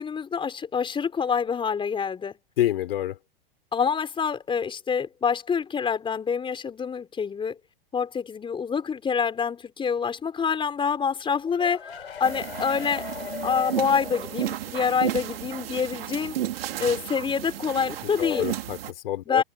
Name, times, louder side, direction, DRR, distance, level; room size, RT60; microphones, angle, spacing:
voice 1, 0.0-2.4 3.7-7.6 7.9-11.8 12.2-13.1 13.4-16.4 16.8-18.5 19.3-19.4, left 6 dB, 15° left, 5.3 m, -26 dB
voice 2, 2.6-3.2 18.2-19.4, left 13 dB, 70° left, 3.8 m, -27 dB
sound 1, 11.2-14.9 15.2-15.3 15.6-15.7, left 6 dB, 90° left, 4.3 m, -38 dB
sound 2, 12.2-18.9, right 12 dB, 70° right, 2.9 m, -33 dB
hypercardioid pair, 120°, 30 cm